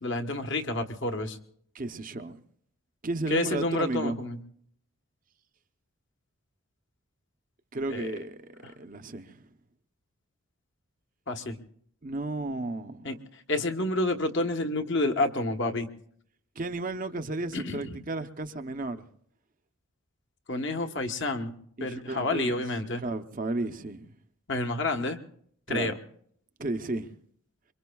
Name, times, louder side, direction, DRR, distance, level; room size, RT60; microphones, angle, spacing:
voice 1, 0.0-1.4 3.3-4.4 7.9-8.1 11.3-11.6 13.0-13.1 13.5-15.9 17.5-18.0 20.5-21.5 21.8-23.0 24.5-25.2 25.7-25.9, left 2 dB, 55° left, 1.2 m, -29 dB
voice 2, 1.7-2.4 3.0-4.2 7.7-9.5 12.0-13.2 16.6-19.1 21.8-22.6 23.0-24.1 25.7-26.0 26.6-27.1, right 2 dB, 40° right, 0.7 m, -33 dB
26.5 x 23.5 x 2.3 m
head